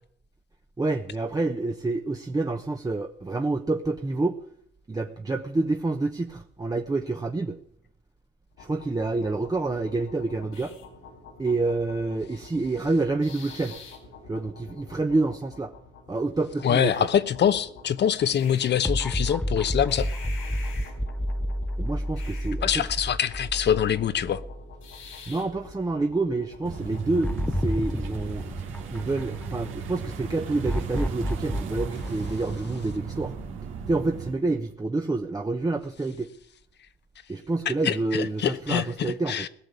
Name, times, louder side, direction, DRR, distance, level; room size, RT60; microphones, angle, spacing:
voice 1, 0.8-4.4 4.9-7.6 8.6-10.7 11.4-13.8 14.3-15.7 16.1-16.9 21.8-22.8 25.3-28.4 28.9-33.3 33.9-36.3 37.3-39.5, right 3 dB, 20° right, 1.0 m, -28 dB
sound 1, 8.5-27.3, left 4 dB, 85° left, 4.5 m, -47 dB
voice 2, 16.6-20.1 22.6-24.4 37.8-39.5, left 9 dB, 60° left, 1.0 m, -24 dB
sound 2, 18.8-25.2 25.6-25.7 27.2-29.7 30.7-33.4, equal, 5° left, 0.6 m, -30 dB
sound 3, 26.6-34.3, right 5 dB, 90° right, 2.3 m, -36 dB
17.5 x 6.6 x 9.7 m
cardioid pair, 90°, 20 cm